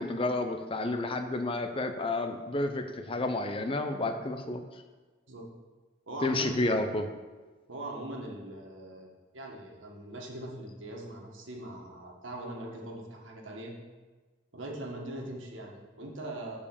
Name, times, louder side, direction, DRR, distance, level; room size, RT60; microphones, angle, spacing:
voice 1, 0.0-4.6 6.2-7.1, left 2 dB, 30° left, 7 dB, 0.6 m, -30 dB
voice 2, 6.1-6.6 7.7-9.1 9.3-13.8 14.5-16.6, right 1 dB, 90° right, -1 dB, 1.6 m, -41 dB
7.3 x 4.9 x 6.9 m, 1.3 s
head